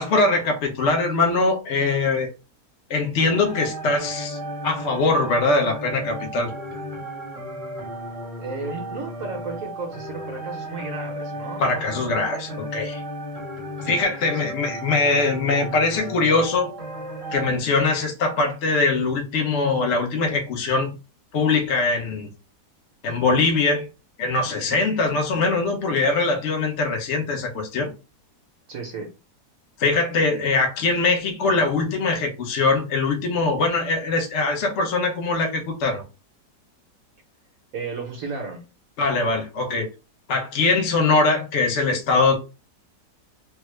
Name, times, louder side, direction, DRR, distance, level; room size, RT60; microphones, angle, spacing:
voice 1, 0.0-2.3 2.9-4.4 4.6-6.5 11.6-13.0 13.8-16.7 17.3-20.9 21.3-22.3 23.0-23.9 24.2-27.9 29.8-36.0 39.0-39.9 40.3-42.4, left 3 dB, 55° left, 1.0 m, -22 dB
sound 1, 3.2-17.5, right 1 dB, 30° right, 0.8 m, -34 dB
voice 2, 8.4-11.6 13.8-14.4 24.4-24.8 28.7-29.1 37.7-38.6, right 4 dB, 60° right, 1.2 m, -34 dB
3.5 x 2.0 x 3.1 m
omnidirectional pair, 1.7 m